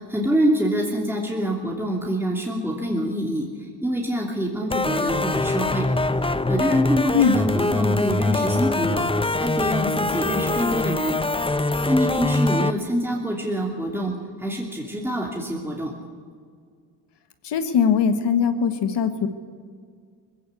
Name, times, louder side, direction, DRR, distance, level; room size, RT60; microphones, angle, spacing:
voice 1, 0.1-3.5 3.8-5.9 6.5-9.1 9.4-11.1 11.9-15.9, equal, 5° right, -1 dB, 2.8 m, -25 dB
sound 1, 4.7-12.7, left 2 dB, 10° left, 0.8 m, -23 dB
voice 2, 17.4-19.3, left 6 dB, 65° left, 9 dB, 1.6 m, -20 dB
20.0 x 16.0 x 8.3 m, 2.1 s
supercardioid pair, 65°, 45 cm